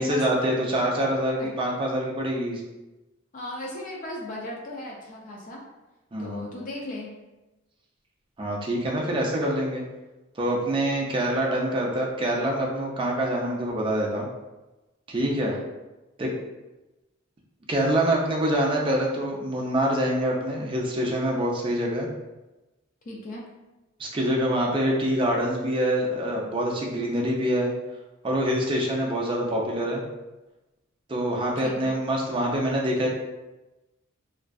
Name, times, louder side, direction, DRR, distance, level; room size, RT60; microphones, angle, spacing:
voice 1, 0.0-2.6 6.1-6.4 8.4-9.8 10.4-14.3 15.1-15.5 16.2-16.3 17.7-22.1 24.0-27.7 28.2-30.0 31.1-33.1, right 1 dB, 25° right, -2 dB, 0.4 m, -25 dB
voice 2, 3.3-5.6 6.2-7.1 15.2-15.7 23.1-23.4 31.6-32.0, left 1 dB, 40° left, -2 dB, 0.4 m, -37 dB
2.5 x 2.2 x 2.2 m, 1.0 s
head